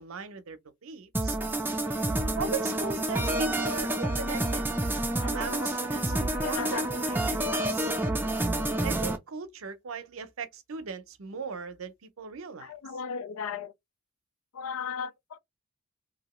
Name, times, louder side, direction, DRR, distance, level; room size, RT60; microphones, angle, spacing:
voice 1, 0.0-1.4 2.4-4.7 5.2-7.9 8.7-12.7, right 5 dB, 85° right, 0.6 m, -38 dB
sound 1, 1.1-9.2, right 1 dB, 10° right, 0.4 m, -29 dB
voice 2, 5.2-5.7 6.1-7.2 12.6-13.7 14.5-15.4, left 6 dB, 85° left, 0.4 m, -37 dB
2.8 x 2.7 x 3.0 m
head